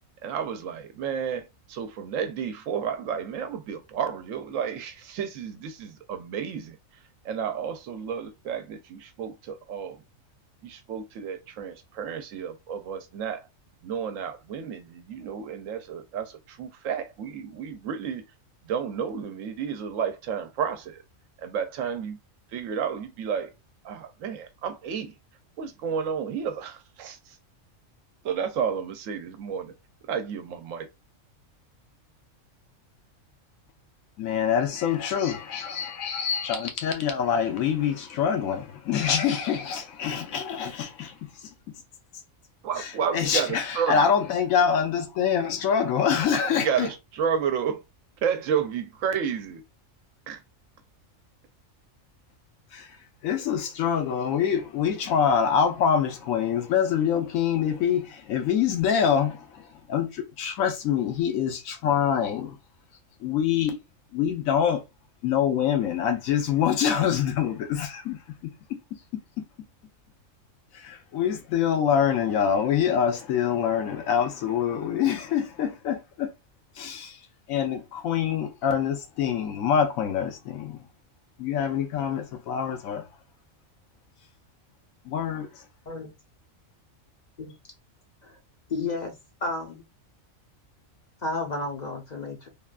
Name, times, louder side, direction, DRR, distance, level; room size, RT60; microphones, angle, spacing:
voice 1, 0.2-10.0 10.6-13.5 13.8-18.2 18.6-21.0 21.4-22.2 22.5-23.5 23.8-25.1 25.6-27.4 28.2-29.7 30.0-30.9 42.6-44.1 46.3-47.8 48.2-49.6 50.3-50.4, right 7 dB, 75° right, 0.9 m, -31 dB
voice 2, 34.2-41.5 42.8-46.9 52.7-53.0 53.2-62.6 63.2-63.8 64.1-64.8 65.2-68.8 69.1-69.4 70.7-76.3 76.7-77.2 77.5-80.8 81.4-83.1 85.0-85.6, left 8 dB, 85° left, 1.1 m, -25 dB
voice 3, 88.7-89.1 89.4-89.8 91.2-92.5, left 3 dB, 45° left, 0.6 m, -31 dB
3.3 x 2.2 x 2.3 m
omnidirectional pair, 1.4 m